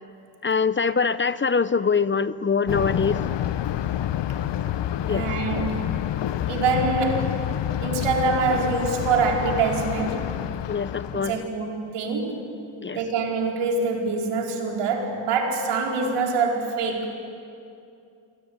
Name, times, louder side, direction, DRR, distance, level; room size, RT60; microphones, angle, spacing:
voice 1, 0.4-3.2 5.0-5.3 10.7-11.3 12.8-13.0, left 5 dB, 25° left, 15 dB, 0.7 m, -23 dB
Thunder, 2.7-11.5, left 11 dB, 60° left, 1.1 m, -28 dB
voice 2, 5.1-5.8 6.5-7.3 7.8-10.3 11.1-12.6 12.9-17.1, right 4 dB, 85° right, 1 dB, 4.8 m, -25 dB
27.5 x 22.5 x 9.6 m, 2.5 s
cardioid pair, 85°, 49 cm